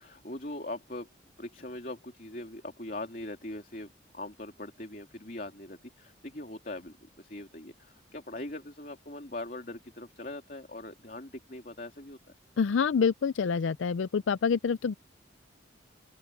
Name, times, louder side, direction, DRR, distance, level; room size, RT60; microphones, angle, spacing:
voice 1, 0.0-12.2, left 1 dB, 45° left, 3.0 m, -41 dB
voice 2, 12.6-14.9, left 6 dB, 90° left, 0.4 m, -27 dB
open air
head